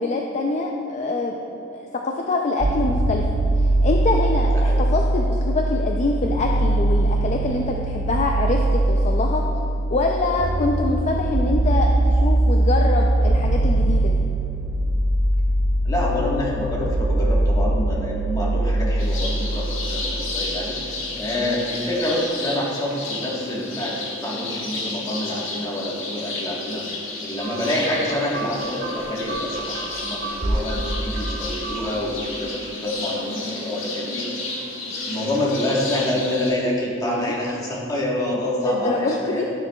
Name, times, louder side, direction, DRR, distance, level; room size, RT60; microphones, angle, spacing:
voice 1, 0.0-3.3 3.5-9.4 9.9-14.2 21.3-21.6 37.0-37.3 38.6-39.5, left 3 dB, 35° left, 2 dB, 0.4 m, -25 dB
sound 1, 2.6-20.6, right 1 dB, 60° right, 0.7 m, -21 dB
voice 2, 4.5-4.8 15.8-26.8 27.2-34.5 35.0-39.4, left 1 dB, 20° left, -4 dB, 1.3 m, -27 dB
sound 2, 19.0-36.5, left 2 dB, 85° left, 1.4 m, -32 dB
sound 3, 27.4-32.1, right 2 dB, 85° right, 1.2 m, -30 dB
12.5 x 6.7 x 2.3 m, 2.8 s
head